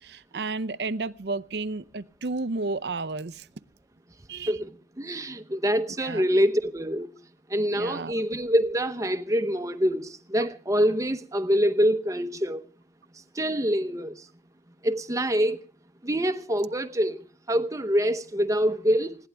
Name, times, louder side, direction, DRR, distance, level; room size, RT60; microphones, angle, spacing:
voice 1, 0.0-3.5 4.3-4.6 6.0-6.2 7.7-8.2, right 3 dB, 70° right, 0.7 m, -32 dB
voice 2, 5.0-7.1 7.5-12.6 13.4-14.1 14.8-15.6 16.0-17.2 17.5-19.2, equal, 20° right, 0.9 m, -25 dB
20.5 x 16.5 x 3.5 m
head